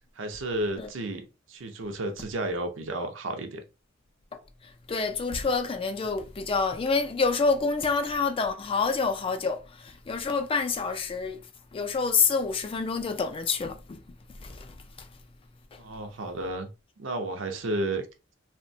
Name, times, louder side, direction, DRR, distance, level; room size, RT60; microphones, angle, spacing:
voice 1, 0.2-3.6 15.8-16.7 17.0-18.1, right 1 dB, 70° right, 0.5 m, -32 dB
voice 2, 4.6-11.4 11.7-14.0 14.3-15.1 15.7-15.8, left 4 dB, 25° left, 0.3 m, -28 dB
2.8 x 2.1 x 2.6 m
head